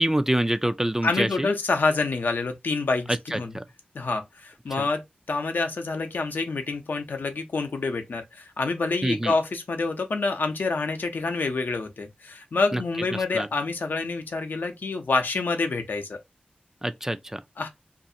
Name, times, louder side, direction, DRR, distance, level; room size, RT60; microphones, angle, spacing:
voice 1, 0.0-1.5 3.1-3.6 4.8-4.9 9.0-9.3 12.7-12.8 13.1-13.5 16.8-17.4, right 1 dB, 15° right, 0.3 m, -26 dB
voice 2, 1.0-3.5 3.9-5.0 5.3-16.2 17.6-17.7, left 3 dB, 75° left, 0.6 m, -27 dB
2.5 x 2.4 x 2.6 m
wide cardioid pair, 60°, 3 cm